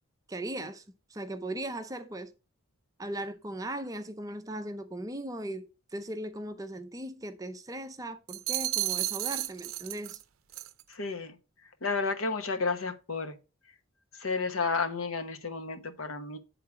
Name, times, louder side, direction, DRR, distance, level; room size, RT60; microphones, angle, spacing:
voice 1, 0.3-0.8 1.1-2.3 3.0-10.2, right 1 dB, 15° right, 0.5 m, -38 dB
sound 1, 8.3-10.2 10.5-10.8, right 15 dB, 75° right, 0.5 m, -32 dB
voice 2, 10.9-11.4 11.8-13.3 14.2-16.4, left 4 dB, 75° left, 0.9 m, -31 dB
8.3 x 3.8 x 4.7 m
head